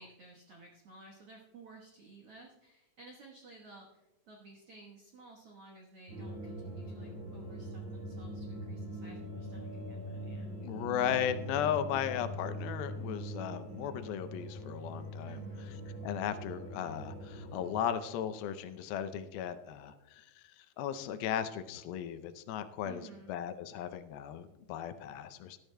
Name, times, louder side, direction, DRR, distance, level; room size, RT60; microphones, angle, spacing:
voice 1, 0.0-10.5 15.2-15.8 22.8-23.3, right 3 dB, 80° right, 0 dB, 1.3 m, -54 dB
sound 1, 6.1-17.7, right 1 dB, 35° right, 4.0 m, -42 dB
voice 2, 10.6-15.4 16.0-20.3 20.8-25.6, left 9 dB, 80° left, 10 dB, 2.4 m, -36 dB
19.0 x 12.0 x 2.2 m, 1.0 s
omnidirectional pair, 4.5 m